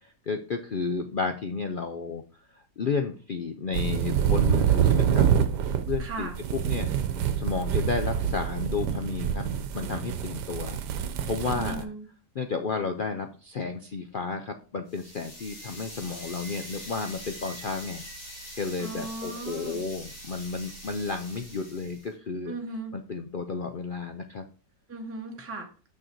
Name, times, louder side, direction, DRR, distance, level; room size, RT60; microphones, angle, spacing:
voice 1, 0.0-2.2 2.5-5.3 5.9-6.9 7.4-9.5 9.7-10.8 11.3-11.9 12.3-18.0 18.5-22.6 22.9-24.4, left 4 dB, 75° left, 6 dB, 0.4 m, -32 dB
sound 1, 3.7-11.8, right 8 dB, 85° right, 1.4 m, -26 dB
voice 2, 6.0-6.3 11.5-12.0 18.8-19.8 22.5-22.9 24.9-25.7, right 3 dB, 10° right, 2 dB, 1.1 m, -37 dB
sound 2, 14.9-22.1, equal, 45° left, 4.1 m, -43 dB
6.5 x 6.4 x 4.5 m, 0.37 s
omnidirectional pair, 1.7 m